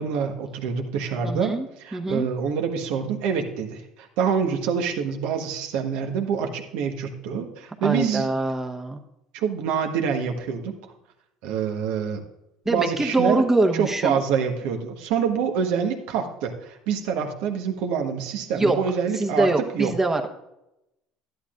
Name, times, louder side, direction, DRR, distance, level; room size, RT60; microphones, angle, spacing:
voice 1, 0.0-8.3 9.3-10.9 11.4-12.2 12.6-13.4 13.7-19.5 19.7-19.9, right 6 dB, 70° right, 5 dB, 1.3 m, -26 dB
voice 2, 1.2-1.7 1.9-2.3 7.8-9.0 12.6-14.2 18.5-18.8 19.2-20.3, right 2 dB, 15° right, 3 dB, 1.1 m, -23 dB
11.5 x 11.0 x 2.5 m, 0.88 s
hypercardioid pair, 75°, 2 cm